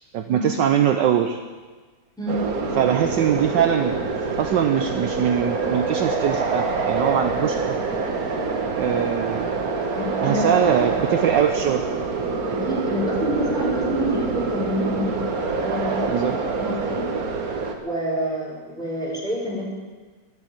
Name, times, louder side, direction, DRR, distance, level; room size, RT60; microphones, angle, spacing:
voice 1, 0.1-1.4 2.8-4.0 4.4-7.7 8.7-9.6 10.2-11.9 16.1-16.4, right 9 dB, 70° right, 6 dB, 1.3 m, -22 dB
voice 2, 2.2-2.5 9.9-10.9 12.4-16.3 16.6-17.1 17.8-19.6, equal, ahead, -4 dB, 4.4 m, -28 dB
sound 1, 2.3-17.7, right 4 dB, 50° right, 1.7 m, -26 dB
12.0 x 11.5 x 9.1 m, 1.4 s
omnidirectional pair, 2.2 m